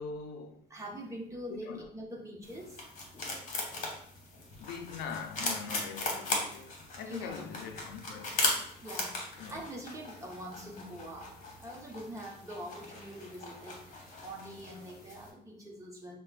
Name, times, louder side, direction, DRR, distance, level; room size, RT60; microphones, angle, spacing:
voice 1, 0.0-0.6 1.5-1.8 4.6-8.5 9.4-9.6, left 6 dB, 85° left, 0.5 m, -42 dB
voice 2, 0.7-2.8 7.1-7.4 8.8-16.2, right 1 dB, 20° right, 1.0 m, -44 dB
sound 1, 2.4-15.3, left 2 dB, 45° left, 1.1 m, -38 dB
6.4 x 2.2 x 2.4 m
cardioid pair, 110°, 17 cm